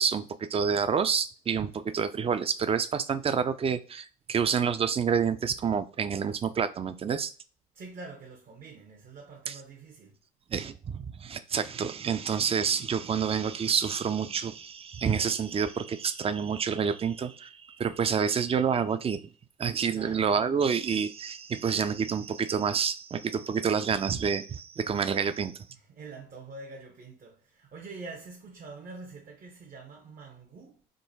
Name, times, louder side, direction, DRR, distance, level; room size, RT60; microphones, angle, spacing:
voice 1, 0.0-7.3 9.5-9.6 10.5-19.2 19.6-25.5, right 6 dB, 30° right, 0.5 m, -28 dB
voice 2, 7.7-10.2 19.9-20.3 25.7-30.8, right 3 dB, 50° right, 0.9 m, -45 dB
3.8 x 2.3 x 4.0 m
hypercardioid pair, 60°, 19 cm